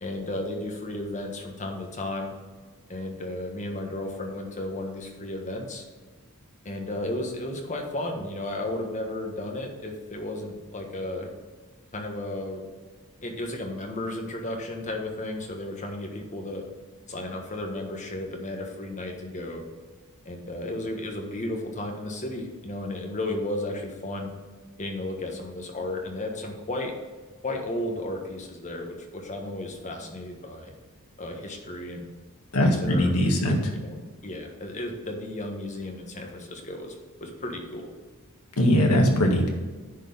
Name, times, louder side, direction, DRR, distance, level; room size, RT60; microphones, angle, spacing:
voice 1, 0.0-2.3 2.9-5.8 6.6-11.3 11.9-12.6 13.2-16.6 17.1-19.6 20.2-24.3 24.8-26.9 27.4-30.7 31.2-32.1 32.6-33.1 33.4-36.9 37.2-37.9, left 1 dB, 35° left, 2 dB, 1.4 m, -34 dB
voice 2, 32.5-33.6 38.6-39.5, equal, 85° left, 1 dB, 1.8 m, -21 dB
10.0 x 4.6 x 5.4 m, 1.4 s
head